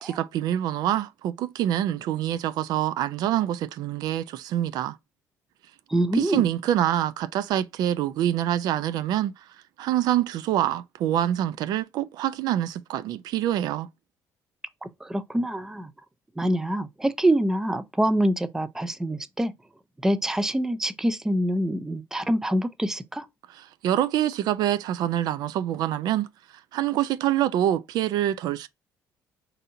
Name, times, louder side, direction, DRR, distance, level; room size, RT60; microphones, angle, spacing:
voice 1, 0.0-5.0 6.1-9.3 9.8-13.9 23.6-26.3 26.7-28.7, right 12 dB, 75° right, 0.3 m, -25 dB
voice 2, 5.9-6.5 14.8-15.9 16.4-19.5 20.0-23.3, right 1 dB, 5° right, 0.4 m, -25 dB
4.1 x 2.6 x 2.6 m
cardioid pair, 105°, 7 cm